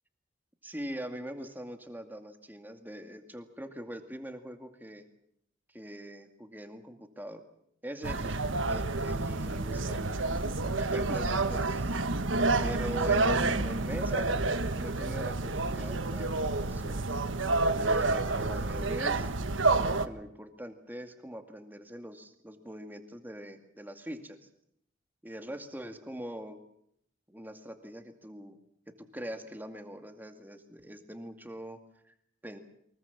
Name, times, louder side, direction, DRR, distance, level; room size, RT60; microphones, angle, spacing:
voice 1, 0.6-5.1 5.7-7.4 7.8-12.1 12.6-14.3 14.8-17.1 17.8-19.3 19.8-24.4 25.2-26.6 27.3-28.6 29.0-31.8 32.1-32.2 32.4-32.6, equal, 10° right, 6 dB, 2.2 m, -42 dB
sound 1, 8.0-20.1, right 3 dB, 90° right, 1.4 m, -29 dB
24.0 x 21.5 x 7.3 m, 0.72 s
head